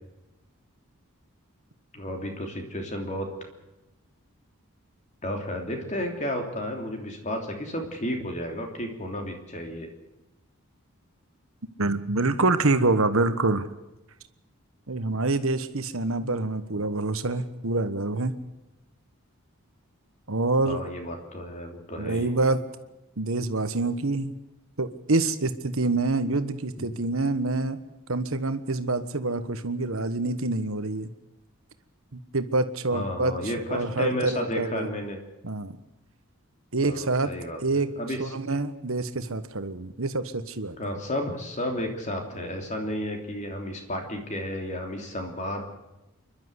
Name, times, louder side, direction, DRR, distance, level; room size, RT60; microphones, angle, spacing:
voice 1, 1.9-3.3 5.2-9.9 16.7-16.9 20.6-22.3 26.8-26.9 32.9-35.2 36.8-38.3 40.8-45.6, left 1 dB, 35° left, 3 dB, 3.1 m, -32 dB
voice 2, 11.8-13.7 14.9-18.3 20.3-20.8 22.0-22.6 23.2-24.3 24.8-27.8 28.1-31.1 32.1-33.3 33.7-34.9 35.4-35.8 36.7-37.3 37.6-37.9 38.2-40.8, right 2 dB, 65° right, 11 dB, 1.3 m, -26 dB
28.5 x 12.0 x 8.1 m, 1.0 s
head